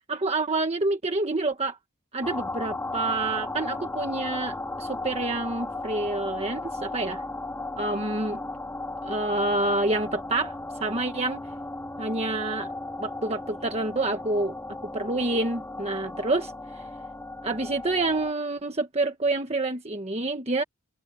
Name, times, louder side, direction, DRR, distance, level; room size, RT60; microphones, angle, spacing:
voice 1, 0.1-1.8 2.1-7.2 7.8-8.4 9.0-10.5 10.8-11.4 12.0-12.7 13.0-14.5 14.9-16.8 17.4-20.6, right 2 dB, 30° right, 1.4 m, -28 dB
sound 1, 2.2-18.3, left 2 dB, 10° left, 2.0 m, -35 dB
head